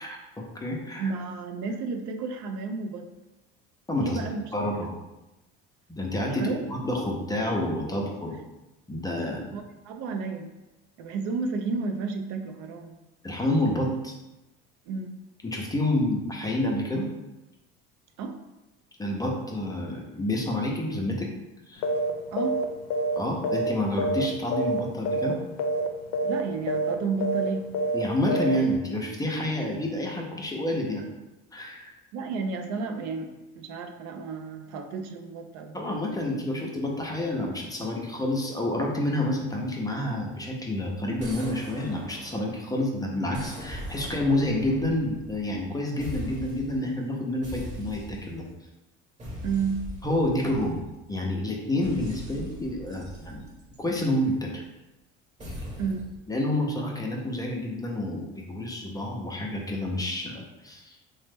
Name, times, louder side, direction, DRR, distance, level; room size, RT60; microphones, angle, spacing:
voice 1, 0.0-1.1 3.9-4.2 4.5-4.9 5.9-8.3 8.9-9.5 13.2-14.1 15.4-17.1 19.0-21.3 21.7-21.8 23.2-25.4 27.9-31.1 31.5-31.9 35.7-48.5 50.0-50.8 51.1-53.5 53.8-54.6 56.3-61.0, left 1 dB, 10° left, -1 dB, 0.5 m, -29 dB
voice 2, 1.0-3.1 4.0-4.4 4.7-4.9 6.4-6.6 9.5-10.5 11.0-13.0 14.9-15.2 18.2-18.4 21.9-22.0 22.3-22.6 26.2-27.7 32.1-36.0 49.4-49.9 55.8-56.1, right 4 dB, 70° right, 5 dB, 0.5 m, -32 dB
sound 1, 21.8-22.1 22.4-22.6 22.9-24.3 24.5-24.8 25.0-25.3 25.6-25.9 26.1-26.4 26.7-26.9 27.2-27.5 27.7-28.0 28.3-28.6, right 1 dB, 70° left, 0.5 m, -26 dB
sound 2, 41.2-42.8 43.3-45.7 46.0-46.8 47.4-48.5 49.2-51.1 51.8-54.2 55.4-56.2, equal, 25° right, 0.9 m, -40 dB
3.0 x 2.1 x 3.3 m, 1.0 s
supercardioid pair, 95°, 30 cm